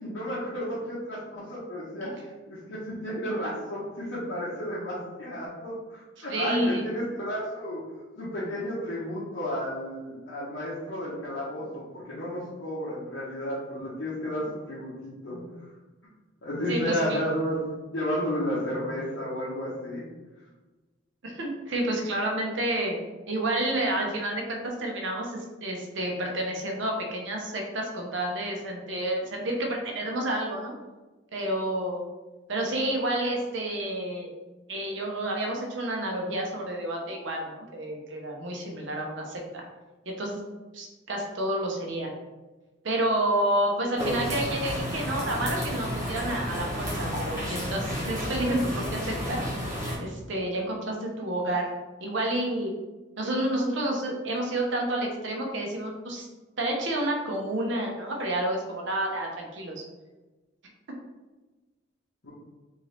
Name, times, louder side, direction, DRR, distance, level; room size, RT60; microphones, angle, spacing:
voice 1, 0.0-2.1 2.5-7.8 8.2-15.7 16.4-17.6 17.9-20.0 62.2-62.3, equal, 60° left, -9 dB, 0.9 m, -32 dB
voice 2, 6.2-6.8 16.7-17.2 21.2-23.0 23.3-30.7 31.3-32.0 32.5-34.3 34.7-39.6 40.1-40.4 40.7-42.1 42.8-49.4 50.0-51.7 52.0-52.7 53.2-56.3 56.6-59.8, right 1 dB, 65° right, 1 dB, 0.7 m, -29 dB
sound 1, 44.0-50.0, equal, 15° right, 1.2 m, -31 dB
3.7 x 2.7 x 3.2 m, 1.2 s
head